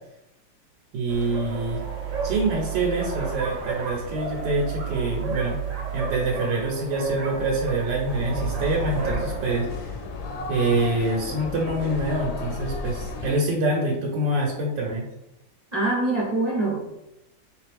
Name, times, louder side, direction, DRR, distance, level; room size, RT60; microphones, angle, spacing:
voice 1, 0.9-1.8 2.2-5.6 5.9-9.9 10.5-15.1, right 2 dB, 80° right, -2 dB, 1.3 m, -25 dB
sound 1, 1.1-9.6, right 6 dB, 55° right, 1.0 m, -32 dB
sound 2, 8.1-13.3, left 3 dB, 70° left, 1.2 m, -33 dB
voice 2, 15.7-16.9, right 2 dB, 35° right, -6 dB, 0.7 m, -24 dB
3.6 x 3.1 x 3.3 m, 0.88 s
omnidirectional pair, 2.0 m